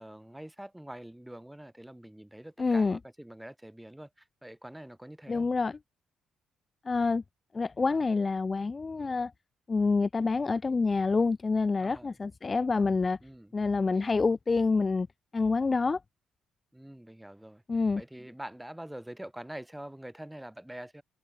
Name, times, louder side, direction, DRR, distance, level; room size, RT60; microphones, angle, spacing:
voice 1, 0.0-5.5 11.8-12.2 13.2-13.5 16.7-17.6 18.0-21.0, right 1 dB, 5° right, 2.3 m, -45 dB
voice 2, 2.6-3.0 5.3-5.8 6.8-7.2 7.5-9.3 9.7-13.2 13.5-15.1 15.3-16.0 17.7-18.0, left 4 dB, 30° left, 0.7 m, -27 dB
cardioid pair, 90°, 0 cm